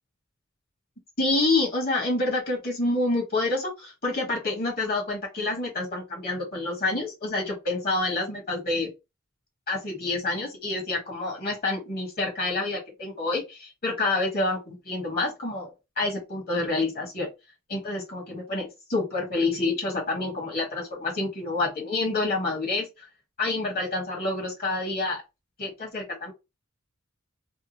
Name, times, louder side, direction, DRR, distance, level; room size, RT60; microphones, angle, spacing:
voice 1, 1.2-8.9 9.7-15.7 16.0-17.3 17.7-22.9 23.4-25.2 25.6-26.3, left 2 dB, 45° left, 1.6 m, -28 dB
3.5 x 2.2 x 3.0 m
head